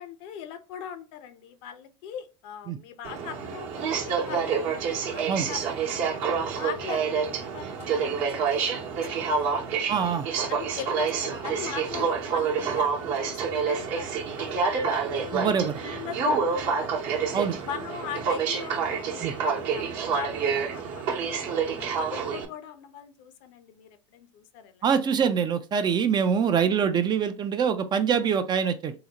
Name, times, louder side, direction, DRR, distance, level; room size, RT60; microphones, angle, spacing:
voice 1, 0.0-6.1 6.5-9.7 10.5-16.9 17.6-24.8 26.8-26.9, left 9 dB, 55° left, 9 dB, 0.6 m, -41 dB
Aircraft, 3.0-22.5, right 5 dB, 55° right, 0.9 m, -28 dB
voice 2, 9.9-10.3 15.3-15.8 17.3-17.6 19.2-19.3 24.8-28.9, right 7 dB, 25° right, 9 dB, 0.4 m, -24 dB
3.8 x 2.1 x 2.8 m, 0.33 s
hypercardioid pair, 100°, 16 cm